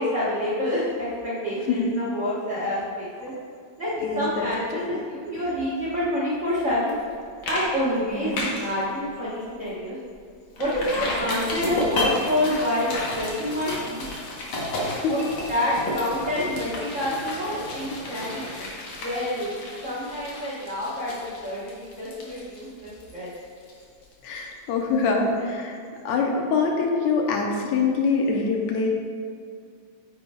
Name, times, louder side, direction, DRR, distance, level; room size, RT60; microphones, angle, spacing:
voice 1, 0.0-3.3 3.8-6.9 7.5-10.0 10.6-14.0 15.0-18.6 19.0-19.5 19.8-23.3, left 1 dB, 65° right, -9 dB, 0.7 m, -27 dB
voice 2, 4.0-4.4 4.7-4.8 7.9-8.4 14.9-15.2 24.2-25.8 26.1-28.9, left 4 dB, 80° left, 0 dB, 2.0 m, -24 dB
sound 1, 6.9-7.1 7.4-7.6 7.9-8.7 9.2-9.3 9.7-9.8 10.6-24.1 24.4-24.5, left 1 dB, 55° left, 1.5 m, -32 dB
9.5 x 5.5 x 2.3 m, 2.3 s
omnidirectional pair, 3.3 m